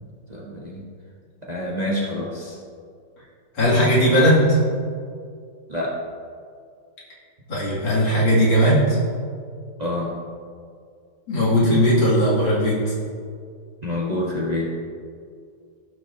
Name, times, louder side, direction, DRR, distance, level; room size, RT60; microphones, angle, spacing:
voice 1, 0.3-0.8 1.4-2.6 5.7-5.9 9.8-10.1 13.8-14.7, left 1 dB, 25° right, -5 dB, 1.1 m, -27 dB
voice 2, 3.5-4.6 7.5-9.0 11.3-12.9, equal, 85° left, -8 dB, 3.3 m, -18 dB
14.5 x 6.2 x 2.8 m, 2.2 s
omnidirectional pair, 2.0 m